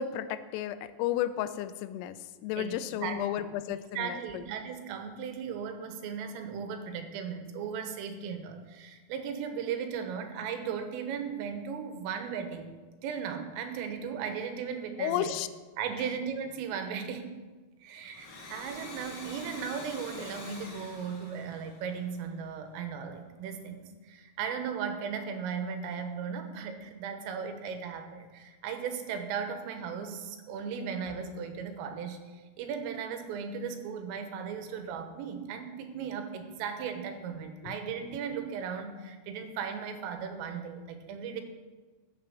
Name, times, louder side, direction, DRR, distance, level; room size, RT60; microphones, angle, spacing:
voice 1, 0.0-2.2 2.4-4.4 15.0-15.5 18.3-18.5 37.6-37.7, left 11 dB, 85° left, 13 dB, 3.1 m, -33 dB
voice 2, 2.6-3.2 4.0-12.7 13.0-15.3 15.8-17.3 17.8-41.4, right 7 dB, 85° right, 6 dB, 3.7 m, -37 dB
Domestic sounds home sounds, 18.0-22.5, left 2 dB, 50° left, 1.3 m, -46 dB
15.5 x 6.9 x 6.8 m, 1.3 s
omnidirectional pair, 5.9 m